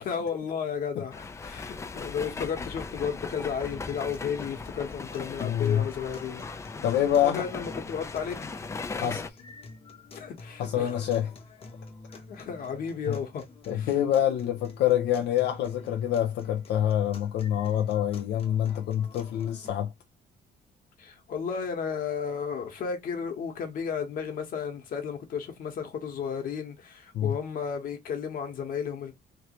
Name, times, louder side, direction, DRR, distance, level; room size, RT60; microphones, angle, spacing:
voice 1, 0.0-6.4 7.2-8.4 10.1-11.0 12.1-13.4 13.7-13.9 21.0-29.1, left 6 dB, 55° left, 1.3 m, -33 dB
sound 1, 1.1-9.3, left 4 dB, 15° left, 0.3 m, -38 dB
sound 2, 3.7-19.7, left 3 dB, 35° left, 0.9 m, -48 dB
voice 2, 5.4-5.9 6.8-7.4 9.0-9.2 10.6-11.3 13.1-13.2 13.7-19.9 27.1-27.4, left 10 dB, 85° left, 0.6 m, -26 dB
3.2 x 2.7 x 3.0 m
cardioid pair, 145°, 17 cm